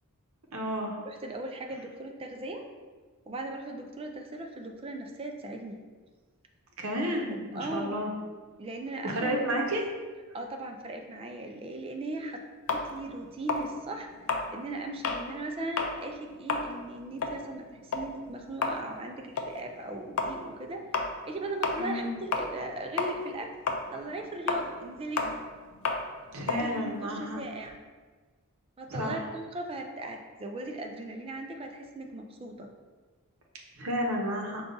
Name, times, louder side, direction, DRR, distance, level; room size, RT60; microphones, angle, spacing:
voice 1, 0.5-1.0 6.8-8.1 9.0-9.9 21.8-22.1 26.3-27.4 28.9-29.2 33.8-34.6, equal, 65° right, 0 dB, 0.8 m, -31 dB
voice 2, 1.0-2.6 3.3-5.8 6.9-8.0 8.6-9.4 10.3-12.4 12.7-20.8 21.2-23.5 23.9-25.4 26.5-27.8 28.8-32.7, right 2 dB, 25° right, 3 dB, 0.4 m, -38 dB
sound 1, 12.7-15.3 15.7-16.0 16.3-22.7 23.0-27.8, left 4 dB, 70° left, 0.4 m, -32 dB
5.2 x 2.3 x 3.9 m, 1.4 s
head